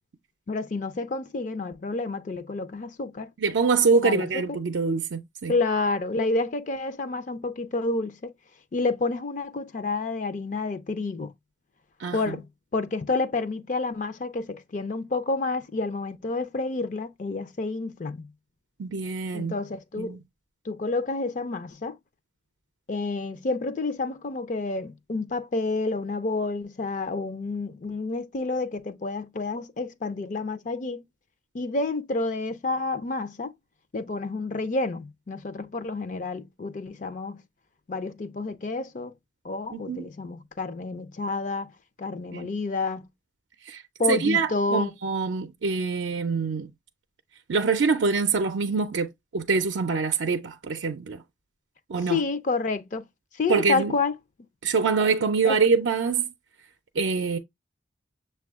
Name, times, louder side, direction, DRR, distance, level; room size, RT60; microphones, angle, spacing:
voice 1, 0.5-3.3 4.0-4.4 5.5-8.3 8.7-11.3 12.1-12.5 12.7-18.2 19.3-20.2 20.7-22.0 22.9-31.0 31.5-33.5 33.9-37.4 37.9-39.1 39.4-41.7 42.0-43.1 44.0-44.9 52.1-53.0 53.4-54.1 55.4-55.6, left 3 dB, 40° left, 0.4 m, -29 dB
voice 2, 3.4-5.5 12.0-12.2 18.8-19.6 20.0-20.2 39.7-40.0 42.3-42.5 43.7-43.8 44.1-46.7 47.5-51.2 51.9-52.2 53.5-53.9 54.6-56.3 57.0-57.4, right 4 dB, 85° right, 0.5 m, -25 dB
6.7 x 2.3 x 3.5 m
head